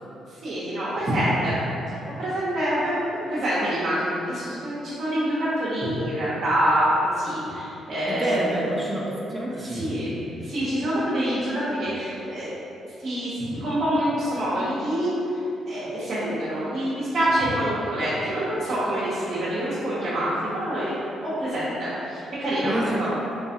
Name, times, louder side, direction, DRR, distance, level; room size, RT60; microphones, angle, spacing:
voice 1, 0.4-1.6 2.2-8.5 9.7-10.1 10.4-12.6 13.0-15.1 15.7-23.1, equal, 50° right, -11 dB, 0.9 m, -26 dB
voice 2, 8.1-9.9 22.6-23.1, right 1 dB, 20° right, -3 dB, 0.4 m, -28 dB
3.4 x 3.0 x 2.8 m, 2.9 s
cardioid pair, 90°, 0 cm